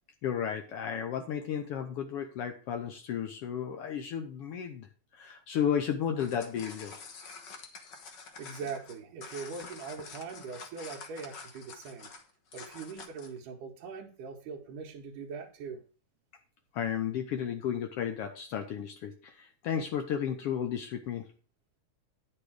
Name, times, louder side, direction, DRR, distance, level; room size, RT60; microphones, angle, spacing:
voice 1, 0.2-7.0 16.7-21.3, left 8 dB, 80° left, 6 dB, 1.3 m, -33 dB
sound 1, 6.0-13.4, left 4 dB, 55° left, 1.3 m, -47 dB
voice 2, 8.4-12.1 12.5-15.8, right 5 dB, 80° right, -2 dB, 2.6 m, -41 dB
9.8 x 6.6 x 4.8 m, 0.37 s
omnidirectional pair, 3.6 m